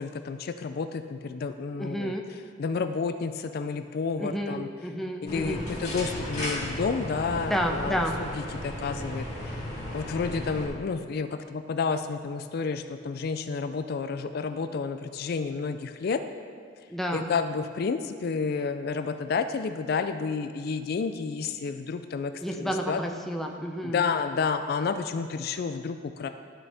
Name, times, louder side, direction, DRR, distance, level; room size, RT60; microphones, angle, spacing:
voice 1, 0.0-2.1 2.6-4.7 5.2-9.6 9.9-16.2 17.1-23.0 23.8-26.3, left 5 dB, 55° left, 9 dB, 0.4 m, -30 dB
voice 2, 1.8-2.2 4.2-5.7 7.5-8.1 16.9-17.3 22.4-24.1, equal, ahead, 1 dB, 0.6 m, -30 dB
sound 1, 5.3-10.7, left 1 dB, 40° left, 2.2 m, -35 dB
12.0 x 5.9 x 3.4 m, 2.1 s
head